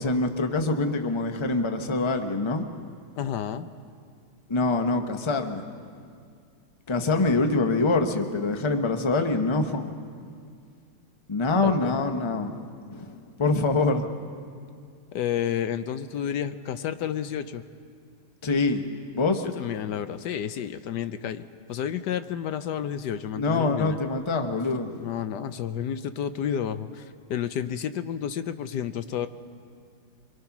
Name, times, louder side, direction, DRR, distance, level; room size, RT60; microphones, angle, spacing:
voice 1, 0.0-2.7 4.5-5.6 6.9-9.9 11.3-14.0 18.4-18.8 19.1-19.4 23.4-25.0, left 3 dB, 30° left, 6 dB, 0.5 m, -25 dB
voice 2, 3.2-3.7 11.6-11.9 15.1-17.6 19.4-24.0 25.0-27.0 27.3-29.3, left 9 dB, 65° left, 11 dB, 1.1 m, -31 dB
24.5 x 23.0 x 6.0 m, 2.2 s
omnidirectional pair, 2.4 m